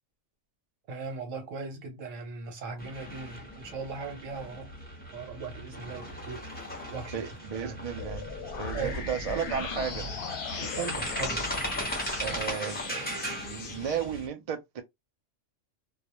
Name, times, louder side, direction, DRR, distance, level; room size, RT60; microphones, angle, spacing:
voice 1, 0.9-4.7 5.1-6.4 6.9-7.2 7.5-7.8 8.7-8.9 9.3-9.4 10.6-11.5, right 4 dB, 85° right, 1.2 m, -38 dB
sound 1, 2.8-14.3, equal, 10° left, 0.7 m, -38 dB
voice 2, 7.1-10.1 12.2-14.8, right 7 dB, 60° right, 0.4 m, -34 dB
sound 2, 8.0-14.0, left 5 dB, 60° left, 0.7 m, -38 dB
2.4 x 2.0 x 2.9 m
omnidirectional pair, 1.3 m